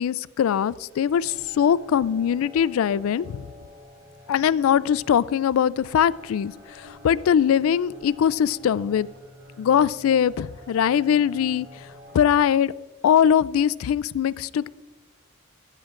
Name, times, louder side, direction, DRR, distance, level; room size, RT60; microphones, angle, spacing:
voice 1, 0.0-3.5 4.3-9.1 9.6-11.7 12.1-12.7 13.0-14.7, left 8 dB, 80° left, 21 dB, 0.3 m, -21 dB
sound 1, 0.9-12.4, left 1 dB, 65° right, 2.2 m, -48 dB
14.0 x 11.5 x 2.5 m, 1.2 s
head